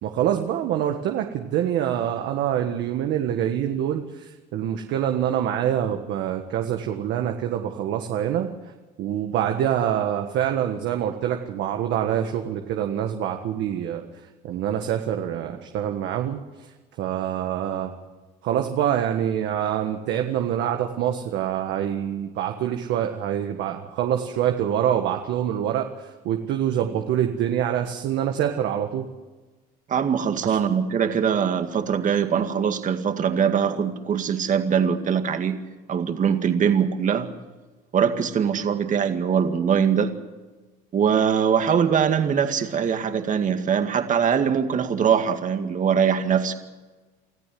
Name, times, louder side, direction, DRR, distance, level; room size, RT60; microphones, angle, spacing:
voice 1, 0.0-8.5 9.0-14.0 14.4-16.4 17.0-17.9 18.4-29.1 30.4-30.6, right 10 dB, 65° right, 4 dB, 1.7 m, -25 dB
voice 2, 29.9-35.6 35.9-37.3 37.9-40.1 40.9-46.6, right 7 dB, 40° right, 7 dB, 2.1 m, -22 dB
25.5 x 14.0 x 7.8 m, 1.2 s
supercardioid pair, 105°, 20 cm